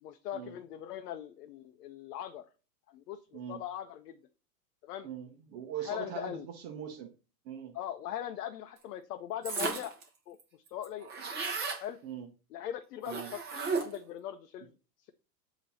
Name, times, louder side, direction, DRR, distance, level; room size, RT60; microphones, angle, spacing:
voice 1, 0.0-2.5 2.9-4.2 4.8-5.1 5.8-6.5 7.7-9.9 10.3-11.1 11.8-12.0 12.5-14.7, left 11 dB, 70° left, 6 dB, 0.8 m, -40 dB
voice 2, 5.0-7.1 7.4-7.8 12.0-12.3 13.0-13.3, right 9 dB, 40° right, 4 dB, 1.1 m, -41 dB
sound 1, 9.4-10.0 10.4-10.5 10.7-11.8 13.0-14.1, right 4 dB, 20° right, 1.2 m, -34 dB
7.8 x 3.0 x 4.0 m, 0.34 s
supercardioid pair, 150°, 49 cm